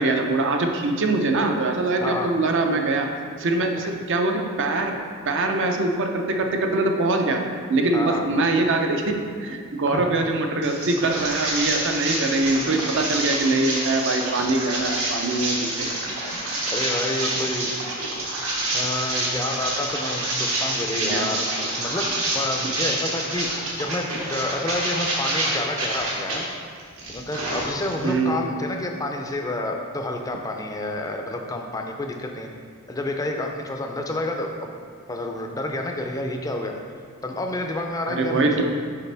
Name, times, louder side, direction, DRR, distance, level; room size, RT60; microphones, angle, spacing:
voice 1, 0.0-3.1 3.4-5.0 5.3-7.4 7.7-15.9 21.0-21.3 28.0-28.4 38.1-38.6, right 2 dB, 55° right, 3 dB, 0.6 m, -23 dB
voice 2, 2.0-2.3 3.8-3.9 7.9-8.3 9.9-10.1 16.7-17.7 18.7-26.5 27.1-32.5 32.9-34.7 35.1-36.7 37.2-38.6, left 2 dB, 15° left, 2 dB, 0.4 m, -29 dB
sound 1, 10.6-26.4 26.8-28.1, right 1 dB, 75° right, 1.5 m, -27 dB
6.7 x 5.1 x 3.4 m, 2.1 s
head